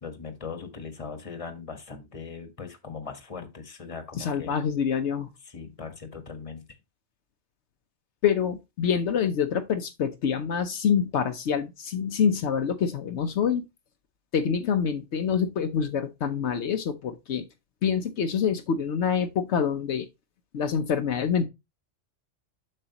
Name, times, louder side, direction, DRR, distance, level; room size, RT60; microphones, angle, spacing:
voice 1, 0.0-4.6 5.4-6.6, left 5 dB, 30° left, 1.2 m, -39 dB
voice 2, 4.2-5.3 8.2-13.6 14.3-17.4 17.8-20.1 20.5-21.5, left 7 dB, 75° left, 1.0 m, -26 dB
7.5 x 6.5 x 2.9 m
omnidirectional pair, 1.2 m